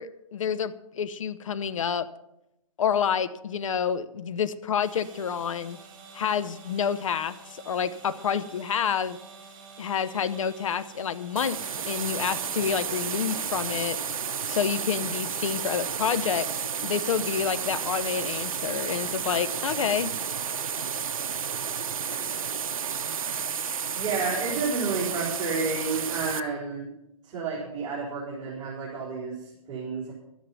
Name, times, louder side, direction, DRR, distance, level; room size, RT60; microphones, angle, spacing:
voice 1, 0.0-2.1 2.8-5.8 6.1-9.2 9.8-11.6 11.9-14.0 14.4-16.5 16.8-20.1, left 7 dB, 65° left, 13 dB, 0.9 m, -28 dB
sound 1, 4.8-14.0, right 5 dB, 40° right, 4.1 m, -49 dB
sound 2, 11.4-26.4, right 7 dB, 70° right, 0.8 m, -32 dB
voice 2, 23.9-26.9 27.2-30.1, right 4 dB, 20° right, -8 dB, 4.6 m, -31 dB
12.5 x 10.5 x 5.7 m, 0.86 s
hypercardioid pair, 130°, 18 cm